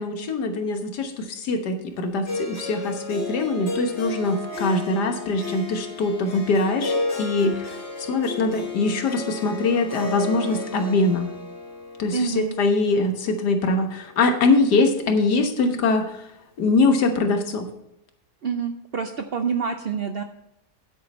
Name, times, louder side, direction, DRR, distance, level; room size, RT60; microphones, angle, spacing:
voice 1, 0.0-7.8 8.1-11.3 12.0-16.3 16.6-17.7, left 3 dB, 85° left, 6 dB, 1.8 m, -23 dB
Harp, 2.2-14.4, left 2 dB, 40° left, 2.8 m, -33 dB
voice 2, 12.1-12.5 18.4-20.2, right 6 dB, 75° right, 7 dB, 0.5 m, -27 dB
9.7 x 8.5 x 4.2 m, 0.82 s
omnidirectional pair, 1.7 m